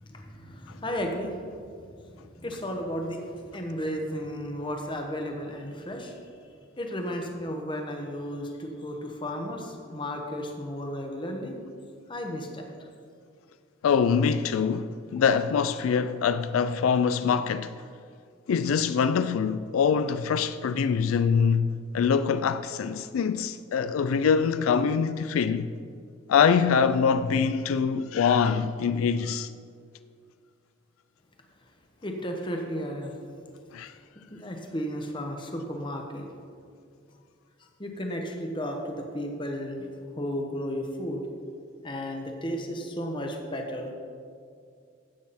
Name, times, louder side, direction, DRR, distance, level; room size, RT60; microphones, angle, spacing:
voice 1, 0.0-6.2 6.8-11.5 12.1-12.7 32.0-33.1 34.3-36.3 37.8-39.9 40.2-41.2 41.8-43.9, equal, 25° left, 1.1 m, -34 dB
voice 2, 13.8-17.8 18.5-25.7 26.3-29.5 33.7-33.9, left 6 dB, 85° left, 0.3 m, -24 dB
12.5 x 8.4 x 4.2 m
head